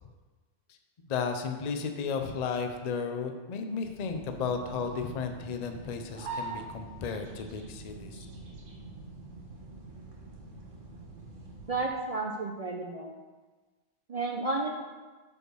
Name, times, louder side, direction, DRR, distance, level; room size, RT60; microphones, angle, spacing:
voice 1, 1.1-8.3, left 5 dB, 45° left, 6 dB, 0.6 m, -34 dB
sound 1, 4.0-11.9, right 3 dB, 85° right, 1.5 m, -44 dB
voice 2, 11.7-13.2 14.1-14.7, right 3 dB, 50° right, 1 dB, 0.4 m, -32 dB
5.1 x 4.8 x 6.2 m, 1.3 s
omnidirectional pair, 1.2 m